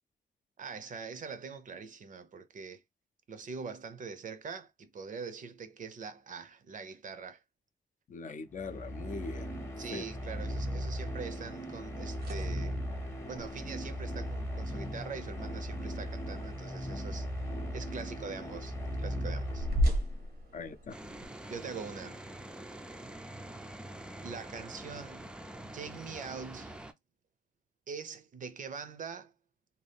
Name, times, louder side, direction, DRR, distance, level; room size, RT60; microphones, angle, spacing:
voice 1, 0.6-2.8 3.3-7.4 9.8-12.8 13.3-19.7 21.5-22.2 24.2-25.3 25.6-26.9 27.9-29.3, right 5 dB, 55° right, 0.5 m, -43 dB
voice 2, 8.1-9.6 9.9-10.0 20.5-20.9, left 4 dB, 50° left, 0.5 m, -41 dB
sound 1, 8.5-20.2, equal, 15° left, 0.7 m, -38 dB
sound 2, 12.1-21.3, equal, 80° right, 0.8 m, -38 dB
sound 3, 20.9-26.9, right 1 dB, 5° right, 0.3 m, -45 dB
2.7 x 2.3 x 3.4 m
wide cardioid pair, 110°, 16 cm